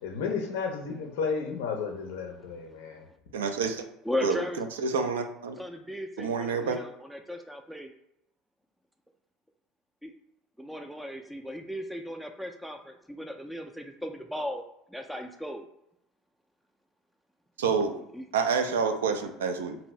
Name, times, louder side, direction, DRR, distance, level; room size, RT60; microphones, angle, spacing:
voice 1, 0.0-3.0, left 5 dB, 70° left, 2 dB, 0.5 m, -32 dB
voice 2, 3.3-3.7 4.2-5.6 6.2-6.8 17.6-18.0 18.3-19.8, right 5 dB, 80° right, 6 dB, 0.4 m, -28 dB
voice 3, 4.1-4.6 5.6-7.9 10.0-10.1 10.6-14.6 14.9-15.6 18.1-18.2, left 1 dB, ahead, 4 dB, 0.4 m, -36 dB
2.7 x 2.4 x 3.0 m, 0.78 s
hypercardioid pair, 70°, 0 cm